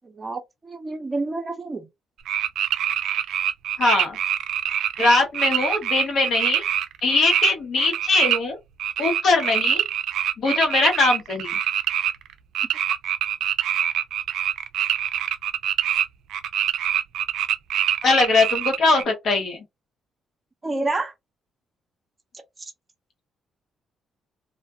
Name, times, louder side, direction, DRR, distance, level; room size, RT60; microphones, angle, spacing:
voice 1, 0.0-1.9 20.6-21.1 22.6-22.7, right 2 dB, 25° right, 0.7 m, -29 dB
sound 1, 2.3-7.5 7.8-8.4 8.8-16.0 16.3-19.0, right 10 dB, 80° right, 0.3 m, -24 dB
voice 2, 3.8-4.2 5.0-6.6 7.0-8.6 9.0-9.8 10.4-11.6 18.0-19.6, left 3 dB, 65° left, 1.1 m, -21 dB
2.3 x 2.3 x 2.7 m
cardioid pair, 90°, 0 cm